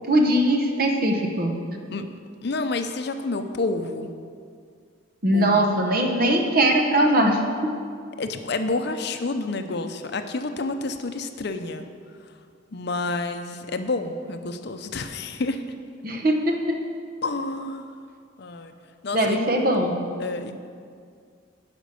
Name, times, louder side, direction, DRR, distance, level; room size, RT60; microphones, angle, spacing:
voice 1, 0.1-1.5 5.2-7.7 16.0-16.8 19.1-20.0, right 1 dB, 50° right, 3 dB, 1.1 m, -21 dB
voice 2, 2.4-4.1 5.3-5.6 8.2-11.8 12.7-15.6 17.2-17.9 18.4-18.7 19.0-19.4 20.2-20.5, left 3 dB, 55° left, 8 dB, 0.6 m, -29 dB
11.0 x 5.3 x 6.8 m, 2.2 s
head